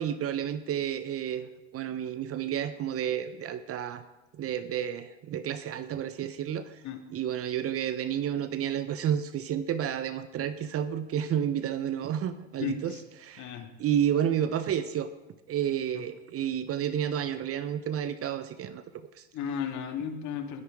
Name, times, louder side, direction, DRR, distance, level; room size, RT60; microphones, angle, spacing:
voice 1, 0.0-4.0 4.3-6.8 7.1-15.1 15.5-18.8 19.2-19.3, right 9 dB, 35° right, 13 dB, 1.0 m, -31 dB
voice 2, 12.6-13.0 13.4-13.7 15.9-16.0 19.3-20.6, left 7 dB, 45° left, 5 dB, 2.2 m, -34 dB
21.5 x 10.5 x 3.7 m, 1.1 s
hypercardioid pair, 80°, 39 cm